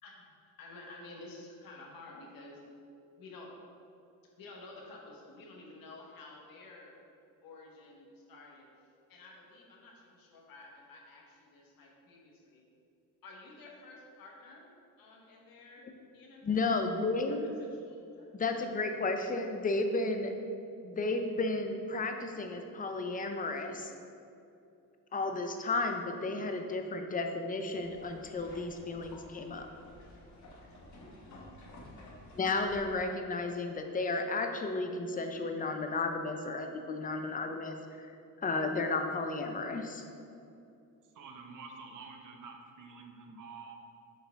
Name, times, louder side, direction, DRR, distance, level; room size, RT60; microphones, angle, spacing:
voice 1, 0.6-2.6 3.2-3.5 4.4-7.0 7.4-8.7 9.1-12.6 13.2-14.7 15.0-15.8 16.1-16.6 17.3-18.3 31.2-32.1, left 2 dB, 85° left, -1 dB, 1.3 m, -52 dB
voice 2, 16.4-17.5 18.3-20.3 20.8-23.9 25.1-29.7 32.3-38.1 38.4-40.0, left 3 dB, 25° left, 5 dB, 0.5 m, -33 dB
sound 1, 27.7-32.8, left 1 dB, 55° left, 1.3 m, -53 dB
voice 3, 41.1-43.8, right 4 dB, 65° right, 3 dB, 0.9 m, -48 dB
7.5 x 4.7 x 3.4 m, 2.6 s
cardioid pair, 115°, 34 cm